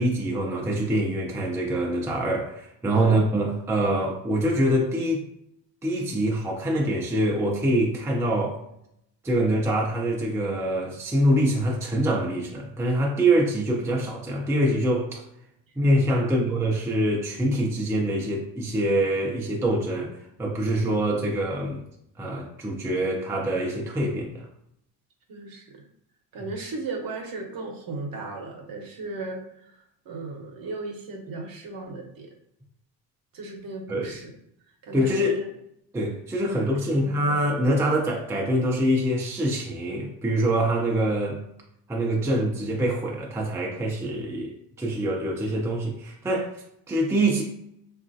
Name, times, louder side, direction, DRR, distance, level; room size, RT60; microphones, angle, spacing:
voice 1, 0.0-5.2 5.8-8.6 9.2-15.2 15.8-20.1 20.4-21.8 22.2-24.5 33.9-34.1 34.9-35.4 35.9-41.4 41.9-47.4, right 1 dB, 5° right, -1 dB, 0.4 m, -25 dB
voice 2, 25.3-25.8 26.3-32.3 33.3-34.3 34.8-35.5 36.6-36.7 36.9-37.2, right 3 dB, 50° right, 2 dB, 0.8 m, -36 dB
2.9 x 2.4 x 2.6 m, 0.75 s
supercardioid pair, 90°, 44 cm